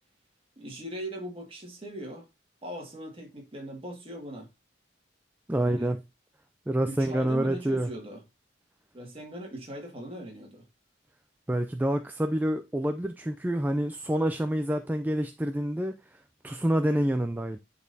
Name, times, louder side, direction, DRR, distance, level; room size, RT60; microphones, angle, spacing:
voice 1, 0.6-2.3 2.6-4.5 5.6-5.9 6.9-8.2 8.9-10.6, equal, 30° right, 1.8 m, -40 dB
voice 2, 5.5-6.0 6.7-7.9 11.5-15.9 16.4-17.6, right 1 dB, 10° right, 0.3 m, -27 dB
10.5 x 4.1 x 2.7 m
head